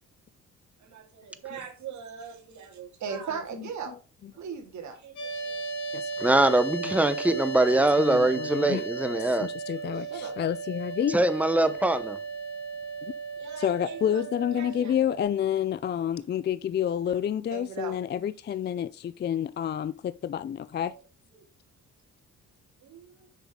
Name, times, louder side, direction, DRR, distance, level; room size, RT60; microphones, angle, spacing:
voice 1, 0.8-3.9 4.4-5.6 10.0-10.4 13.4-14.3 14.5-14.9 17.5-18.0 20.9-21.0 21.3-21.4 22.8-23.2, right 6 dB, 70° right, 2.4 m, -39 dB
voice 2, 3.3-4.0 4.2-4.3 5.9-6.1 6.8-7.0 7.7-8.8 9.4-11.1 13.6-20.9, left 9 dB, 35° left, 0.4 m, -29 dB
sound 1, 5.2-15.2, right 4 dB, 75° left, 3.7 m, -35 dB
voice 3, 6.2-9.5 11.1-12.2, right 2 dB, 5° right, 0.9 m, -23 dB
7.2 x 5.8 x 3.7 m
cardioid pair, 90°, 30 cm